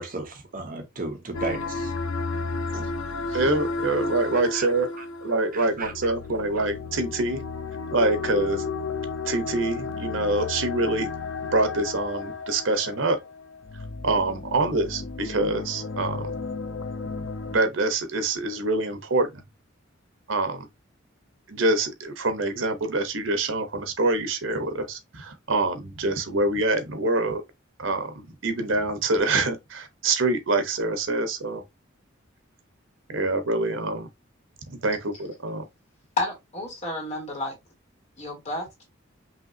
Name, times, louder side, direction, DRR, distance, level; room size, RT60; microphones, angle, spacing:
voice 1, 0.0-1.9 2.7-2.9 4.6-4.7 5.5-5.9, right 3 dB, 45° right, 0.9 m, -34 dB
sound 1, 1.3-17.6, left 4 dB, 80° left, 0.7 m, -33 dB
voice 2, 3.3-4.9 5.2-7.4 7.9-8.7 9.3-11.1 11.5-13.2 14.0-16.3 17.0-19.4 20.3-20.7 21.5-27.4 27.8-31.6 33.1-34.1 34.7-35.6, right 2 dB, 75° right, 1.0 m, -25 dB
voice 3, 36.2-37.6 38.2-38.8, left 2 dB, 35° left, 1.8 m, -31 dB
5.4 x 2.8 x 2.7 m
head